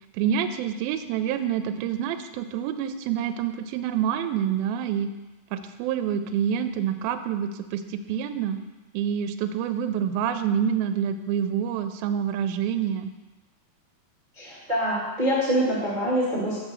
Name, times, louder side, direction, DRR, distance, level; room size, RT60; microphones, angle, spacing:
voice 1, 0.1-5.1 5.5-8.6 8.9-13.1, right 8 dB, 80° right, 9 dB, 2.2 m, -27 dB
voice 2, 14.3-16.6, equal, 40° right, -9 dB, 0.6 m, -25 dB
6.5 x 4.9 x 6.2 m, 1.1 s
omnidirectional pair, 4.4 m